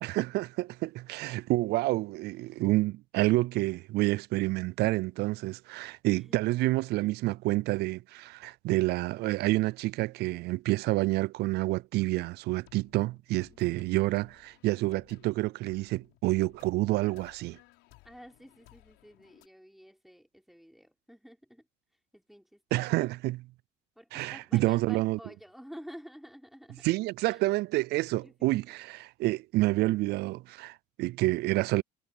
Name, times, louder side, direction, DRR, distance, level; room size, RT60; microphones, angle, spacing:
voice 1, 0.0-17.6 22.7-23.5 24.1-25.2 26.8-31.8, right 19 dB, 65° right, 0.4 m, -28 dB
voice 2, 6.1-6.5 18.0-21.7 22.1-22.8 24.0-26.9 27.3-27.4 28.2-28.8, equal, ahead, 3.7 m, -50 dB
sound 1, 12.4-19.5, left 20 dB, 80° left, 5.3 m, -60 dB
supercardioid pair, 75°, 18 cm